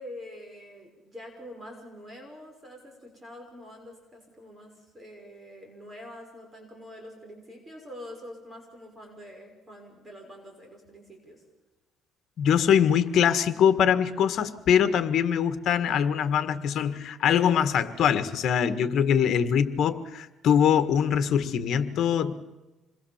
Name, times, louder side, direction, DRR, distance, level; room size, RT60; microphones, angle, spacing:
voice 1, 0.0-11.4, left 1 dB, 20° right, 2 dB, 6.2 m, -45 dB
voice 2, 12.4-22.3, left 8 dB, 60° left, 11 dB, 1.7 m, -23 dB
27.5 x 21.5 x 7.4 m, 1.1 s
cardioid pair, 130°, 0 cm